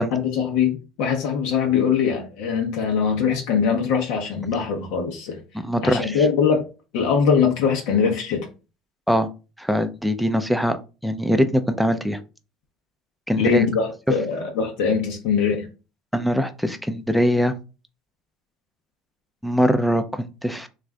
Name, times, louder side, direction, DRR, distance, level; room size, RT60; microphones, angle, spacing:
voice 1, 0.0-5.4 5.8-6.6 6.9-8.5 13.4-15.7, left 6 dB, 75° left, 0.8 m, -22 dB
voice 2, 5.6-6.2 9.1-9.3 9.6-10.8 11.0-12.2 13.3-13.6 16.1-17.5 19.4-20.7, equal, ahead, 0.4 m, -22 dB
3.1 x 2.5 x 3.4 m
supercardioid pair, 110°, 0 cm